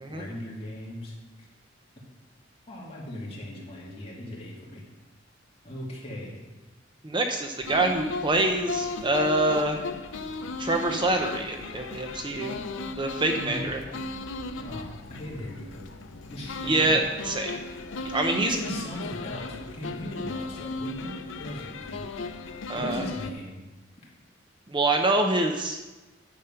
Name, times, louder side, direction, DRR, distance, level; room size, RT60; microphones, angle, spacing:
voice 1, 0.1-1.5 2.7-4.8 5.6-6.3 13.3-13.7 14.2-14.3 14.6-15.8 16.3-16.9 18.3-21.1 21.4-22.1 22.7-23.5, equal, 30° left, -4 dB, 2.7 m, -38 dB
voice 2, 7.0-9.8 10.6-12.6 13.0-13.8 16.7-17.6 18.0-18.6 22.7-23.0 24.7-25.8, right 2 dB, 25° right, 4 dB, 0.7 m, -25 dB
sound 1, 7.6-23.3, left 3 dB, 80° left, 0.6 m, -36 dB
10.0 x 7.2 x 5.7 m, 1.2 s
head